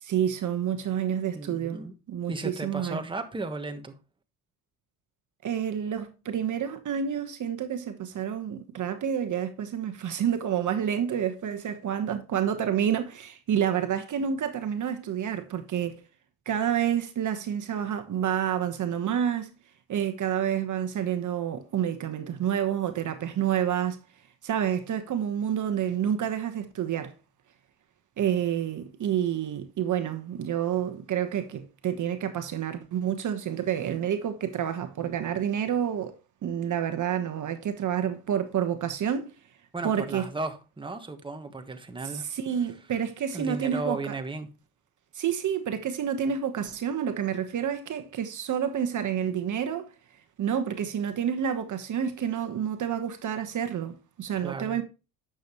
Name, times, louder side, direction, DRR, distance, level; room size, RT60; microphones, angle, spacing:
voice 1, 0.0-1.8 2.1-3.0 5.4-16.0 16.5-19.5 19.9-24.0 24.4-27.1 28.2-39.3 39.8-40.3 42.0-44.1 45.1-49.9 50.4-54.8, right 9 dB, 50° right, 1.2 m, -29 dB
voice 2, 1.3-1.9 2.3-3.9 39.7-42.2 43.3-44.5 54.3-54.8, right 3 dB, 15° right, 1.4 m, -35 dB
10.5 x 7.1 x 3.0 m
cardioid pair, 100°, 38 cm